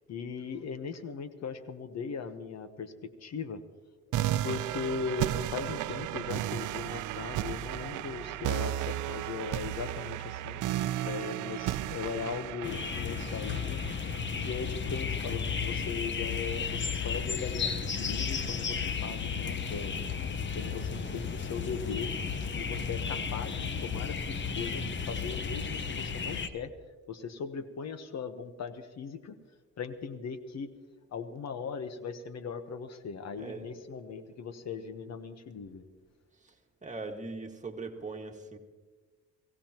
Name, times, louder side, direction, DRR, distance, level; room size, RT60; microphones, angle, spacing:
voice 1, 0.1-3.6 4.4-13.8 14.3-20.1 20.5-22.1 22.5-26.8 27.1-29.4 29.8-30.7 31.1-35.8, left 5 dB, 60° left, 10 dB, 1.2 m, -39 dB
sound 1, 4.1-15.1, right 13 dB, 85° right, 0.5 m, -34 dB
sound 2, 12.6-26.5, left 6 dB, 40° left, 1.0 m, -33 dB
voice 2, 20.9-21.2 33.3-33.8 36.3-38.6, right 3 dB, 25° right, 3 dB, 1.8 m, -41 dB
23.0 x 16.5 x 3.0 m, 1.4 s
cardioid pair, 90°, 30 cm